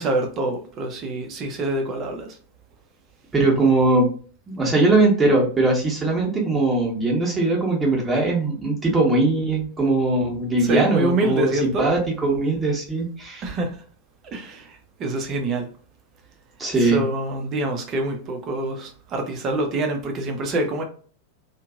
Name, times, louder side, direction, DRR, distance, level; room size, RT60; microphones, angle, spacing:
voice 1, 0.0-2.4 10.6-11.9 13.4-13.8 14.3-15.7 16.8-20.8, right 1 dB, 30° right, 0.7 m, -26 dB
voice 2, 3.3-4.1 4.5-13.4 16.6-17.0, right 2 dB, 15° right, 1.1 m, -20 dB
2.8 x 2.6 x 2.4 m
figure-of-eight pair, 90°, 0 cm